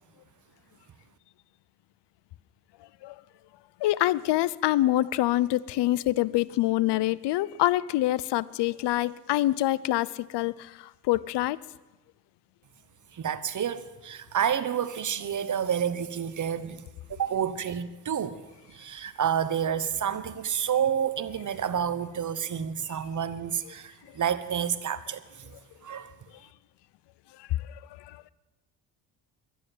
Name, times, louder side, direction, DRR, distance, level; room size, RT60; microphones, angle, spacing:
voice 1, 3.8-10.5 11.1-11.6, left 15 dB, 75° left, 0.6 m, -25 dB
voice 2, 13.1-16.8 17.1-18.4 18.7-25.2 25.8-26.1, right 8 dB, 45° right, 1.1 m, -29 dB
11.5 x 11.0 x 9.6 m
cardioid pair, 75°, 42 cm